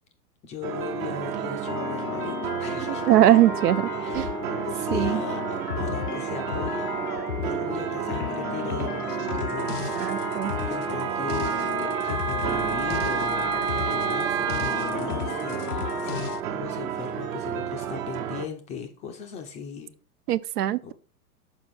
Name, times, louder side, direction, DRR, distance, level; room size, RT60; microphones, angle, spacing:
voice 1, 0.4-3.0 4.0-4.3 4.6-7.1 7.4-16.2 16.5-19.9 20.8-20.9, left 7 dB, 15° left, 0.4 m, -38 dB
sound 1, 0.6-18.5, right 9 dB, 60° right, 1.1 m, -32 dB
sound 2, 1.6-16.4, left 9 dB, 90° left, 0.6 m, -33 dB
voice 2, 2.9-4.3 4.9-5.2 10.0-10.5 20.3-20.9, right 13 dB, 80° right, 0.5 m, -21 dB
Wind instrument woodwind instrument, 9.3-15.0, right 7 dB, 30° right, 0.7 m, -30 dB
6.1 x 4.4 x 4.2 m
hypercardioid pair, 110°, 46 cm